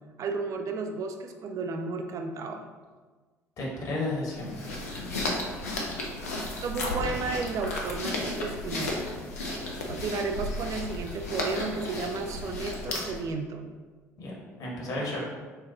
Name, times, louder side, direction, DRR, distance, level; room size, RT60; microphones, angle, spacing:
voice 1, 0.2-2.7 6.6-9.0 9.9-13.7, right 4 dB, 40° right, 5 dB, 0.4 m, -33 dB
voice 2, 3.6-4.7 14.2-14.3 14.6-15.2, left 2 dB, 50° left, -3 dB, 1.2 m, -32 dB
sound 1, 4.3-13.3, left 1 dB, 80° left, 0.5 m, -33 dB
6.5 x 2.2 x 2.9 m, 1.4 s
figure-of-eight pair, 50°, 8 cm